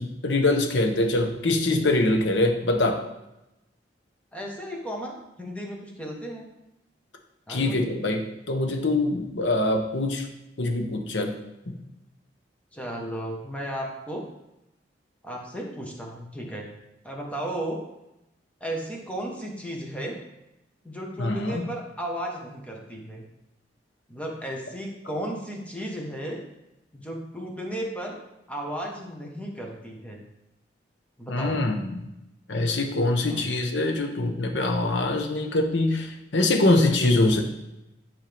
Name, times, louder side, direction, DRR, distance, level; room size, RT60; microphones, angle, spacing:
voice 1, 0.0-3.0 7.5-10.2 10.6-11.3 11.7-11.8 21.2-21.6 31.3-32.1 32.5-37.4, left 2 dB, 80° left, 4 dB, 1.0 m, -24 dB
voice 2, 4.3-6.5 7.5-7.8 12.7-14.2 15.2-16.7 17.0-17.8 18.6-20.2 20.8-23.2 24.1-26.4 26.9-28.2 28.5-30.2 31.2-31.6 33.2-33.5, right 1 dB, 10° left, -1 dB, 1.3 m, -34 dB
10.0 x 4.5 x 3.5 m, 0.91 s
head